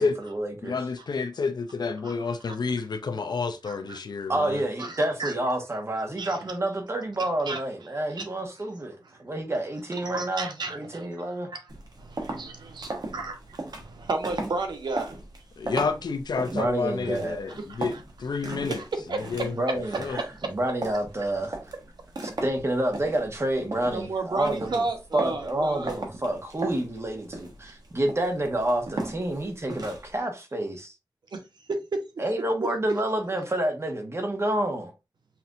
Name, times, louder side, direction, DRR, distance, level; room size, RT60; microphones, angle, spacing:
voice 1, 0.0-0.7 4.3-11.5 16.5-17.6 19.6-21.6 22.4-24.9 25.1-30.9 32.2-34.9, right 1 dB, 40° right, 1.2 m, -29 dB
voice 2, 0.6-4.6 15.6-17.9 18.2-18.8 19.1-20.2, left 4 dB, 75° left, 0.5 m, -30 dB
voice 3, 3.7-4.0 4.8-5.3 6.2-6.5 7.5-7.6 8.2-8.3 10.0-11.2 11.5-11.6 12.0-15.2 17.6-18.0 18.7-20.5 23.9-25.9 31.3-31.4 31.7-32.0 32.6-32.7, right 3 dB, 90° right, 0.9 m, -33 dB
sound 1, 11.7-30.2, right 2 dB, 65° right, 1.1 m, -38 dB
5.7 x 2.7 x 2.5 m
wide cardioid pair, 80°, 7 cm